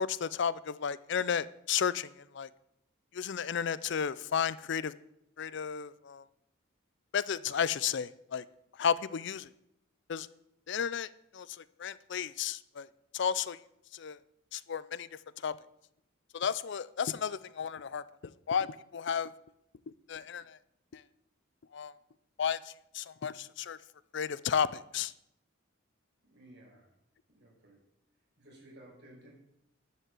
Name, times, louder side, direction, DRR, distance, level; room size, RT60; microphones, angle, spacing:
voice 1, 0.0-2.5 3.1-4.9 5.4-6.2 7.1-8.4 8.8-9.5 10.1-10.3 10.7-11.1 11.3-11.5 11.8-12.9 13.1-13.6 13.9-14.2 14.5-15.1 15.4-15.6 16.3-19.3 20.1-20.6 20.9-21.0 21.7-21.9 22.4-23.8 24.1-25.1, left 7 dB, 60° left, 0.4 m, -33 dB
voice 2, 26.3-26.9 27.3-27.8 28.4-29.3, right 1 dB, 60° right, 5.2 m, -55 dB
11.0 x 5.6 x 7.6 m
head